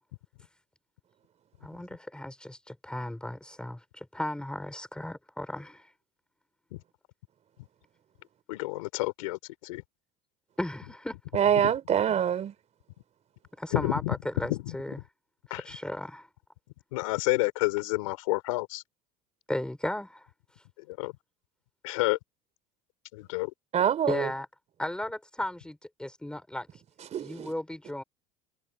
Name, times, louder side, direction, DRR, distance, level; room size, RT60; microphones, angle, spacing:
voice 1, 1.6-5.9 10.6-11.2 13.6-15.0 15.5-16.3 19.5-20.3 24.1-24.5 24.8-26.8 27.2-28.0, left 1 dB, 5° left, 5.3 m, -35 dB
voice 2, 8.5-9.8 13.7-14.2 14.4-14.8 15.5-15.6 16.9-18.8 20.9-21.1 21.8-22.2 23.1-23.5, left 21 dB, 85° left, 3.8 m, -29 dB
voice 3, 11.3-12.5 23.7-24.3 27.1-27.5, right 9 dB, 40° right, 3.5 m, -25 dB
supercardioid pair, 95°, 17 cm